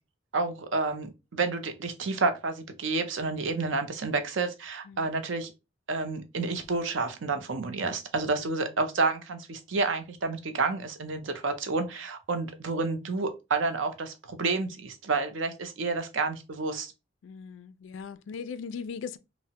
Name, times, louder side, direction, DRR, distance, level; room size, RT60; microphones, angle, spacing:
voice 1, 0.3-5.5 5.9-16.9, right 3 dB, 70° right, 0.6 m, -30 dB
voice 2, 4.9-5.2 17.2-19.2, left 6 dB, 70° left, 0.3 m, -39 dB
3.1 x 2.0 x 2.8 m
head